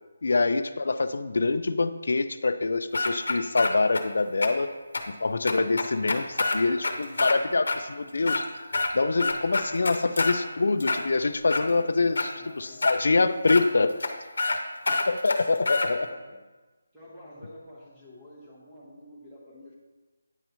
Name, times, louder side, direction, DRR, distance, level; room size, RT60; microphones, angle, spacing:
voice 1, 0.2-4.7 5.2-8.4 8.9-13.9 15.1-16.1, left 3 dB, 50° left, 12 dB, 0.3 m, -25 dB
sound 1, 2.9-4.0 4.4-4.5 4.9-5.0 5.5-7.4 7.7-7.8 8.2-8.9 9.2-10.4 10.8-11.6 12.2-12.3 12.8-13.0 13.5-13.6 14.0-14.1 14.4-14.6 14.9-15.9, left 3 dB, 75° left, 0.7 m, -27 dB
voice 2, 12.4-13.1 15.9-16.4 16.9-19.8, left 1 dB, 5° right, -7 dB, 0.7 m, -49 dB
8.9 x 3.0 x 5.4 m, 1.3 s
hypercardioid pair, 180°, 0 cm